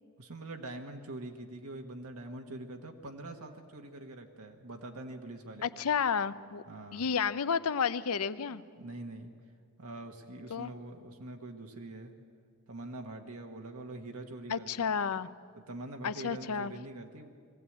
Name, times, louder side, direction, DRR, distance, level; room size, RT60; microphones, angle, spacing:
voice 1, 0.2-5.8 6.6-7.1 8.5-9.3 9.8-12.1 12.7-14.9 15.5-17.3, right 2 dB, 80° right, 3 dB, 1.4 m, -44 dB
voice 2, 5.6-6.6 6.9-8.6 10.5-10.7 14.5-15.3 16.0-16.7, left 6 dB, 75° left, 15 dB, 0.6 m, -31 dB
21.5 x 15.5 x 8.7 m, 2.1 s
head